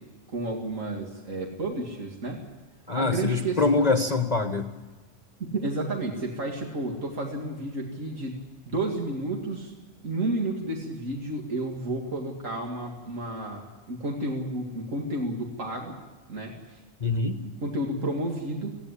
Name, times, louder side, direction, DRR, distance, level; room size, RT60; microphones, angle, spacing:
voice 1, 0.3-2.4 2.9-4.0 5.4-8.4 8.7-9.7 10.0-16.0 16.3-16.8 17.4-18.8, right 2 dB, 85° right, 0 dB, 2.5 m, -31 dB
voice 2, 2.9-4.7 17.0-17.4, left 3 dB, 35° left, 7 dB, 1.0 m, -24 dB
17.5 x 16.0 x 9.9 m, 1.3 s
omnidirectional pair, 1.3 m